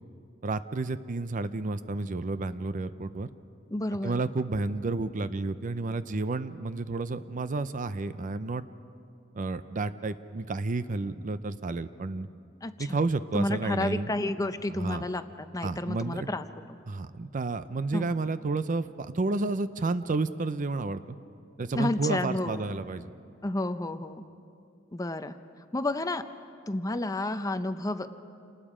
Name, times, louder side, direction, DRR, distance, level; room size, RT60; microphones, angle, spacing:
voice 1, 0.4-3.3 4.0-8.6 9.3-12.3 12.8-14.1 14.7-15.0 15.6-16.3 16.9-21.0 21.6-23.1, right 3 dB, 40° right, 13 dB, 0.5 m, -31 dB
voice 2, 3.7-4.2 12.6-13.0 13.3-16.5 17.9-18.1 21.8-22.7 23.4-24.3 24.9-25.4 25.7-26.3 26.7-28.1, left 2 dB, 20° left, 10 dB, 0.6 m, -31 dB
28.5 x 19.5 x 5.0 m, 2.5 s
head